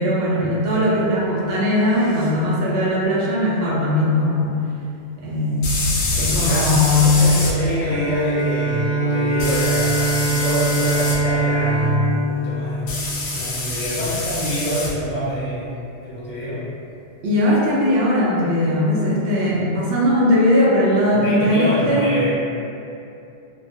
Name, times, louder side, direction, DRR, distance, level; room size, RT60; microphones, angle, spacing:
voice 1, 0.0-4.5 5.2-5.7 6.1-7.2 17.2-22.1, left 1 dB, 65° right, -5 dB, 0.7 m, -19 dB
sound 1, 2.2-2.3 5.6-7.5 9.4-11.2 12.9-14.9, left 2 dB, 85° left, 0.9 m, -25 dB
voice 2, 6.2-6.7 7.0-13.0 13.3-15.7 16.0-16.6 21.1-22.3, equal, 45° left, -10 dB, 0.8 m, -26 dB
Bowed string instrument, 7.8-13.7, right 3 dB, 20° right, 0.6 m, -23 dB
2.2 x 2.1 x 2.7 m, 2.6 s
omnidirectional pair, 1.2 m